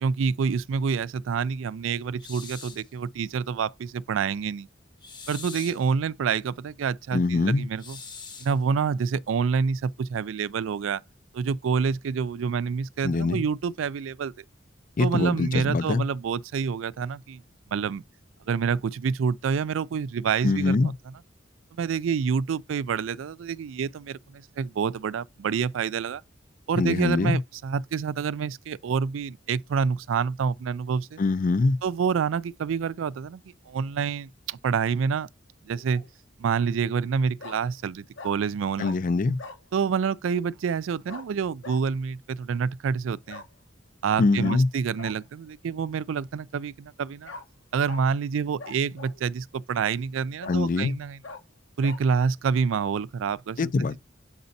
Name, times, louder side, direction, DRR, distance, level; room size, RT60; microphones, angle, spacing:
voice 1, 0.0-4.7 5.3-8.0 8.4-11.0 11.3-14.4 15.0-17.4 17.7-18.0 18.5-20.9 21.8-26.2 26.7-31.2 31.8-35.3 35.7-36.0 36.4-39.0 39.7-43.4 44.0-47.3 47.7-51.2 51.8-53.7, right 6 dB, 90° right, 0.4 m, -27 dB
sound 1, 2.2-2.9 5.0-5.9 7.8-8.6, left 5 dB, 25° left, 0.8 m, -42 dB
voice 2, 7.1-7.7 13.0-13.4 15.0-16.0 20.4-20.9 26.8-27.4 31.2-31.8 38.8-39.4 44.2-44.7 50.5-51.0 53.6-54.0, left 3 dB, 45° left, 0.4 m, -23 dB
Bark, 35.7-36.1 37.4-37.6 38.2-38.3 38.8-39.0 39.4-39.6 41.1-41.3 41.6-41.8 43.3-43.5 44.4-44.6 45.0-45.1 47.3-47.5 47.9-48.0 48.6-49.2 49.8-49.9 50.4-50.6 51.2-51.4 51.8-52.0, left 4 dB, 70° left, 0.9 m, -41 dB
7.9 x 5.1 x 2.7 m
head